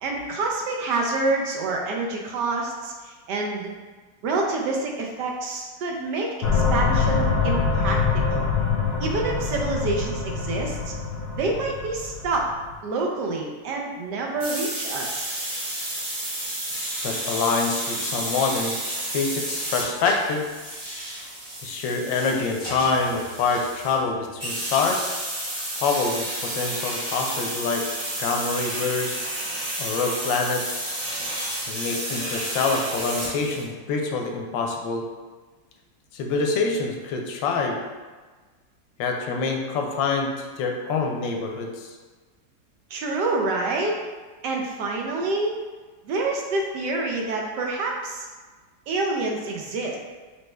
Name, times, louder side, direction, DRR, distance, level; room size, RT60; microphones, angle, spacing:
voice 1, 0.0-3.7 4.2-8.0 8.3-8.5 9.0-10.9 11.4-12.5 12.8-15.3 42.9-44.0 44.4-45.6 46.0-48.3 48.9-50.0, right 3 dB, 75° right, 0 dB, 1.2 m, -27 dB
sound 1, 6.4-12.7, left 5 dB, 70° left, 1.0 m, -24 dB
sound 2, 14.4-24.0 24.4-33.6, right 1 dB, 30° right, 1.2 m, -31 dB
voice 2, 17.0-18.7 19.1-20.5 21.6-25.1 25.8-27.8 28.2-29.3 29.8-30.8 31.7-35.0 36.1-37.8 39.0-41.9, left 4 dB, 90° left, 2 dB, 1.3 m, -26 dB
5.4 x 3.1 x 2.2 m, 1.4 s
omnidirectional pair, 2.0 m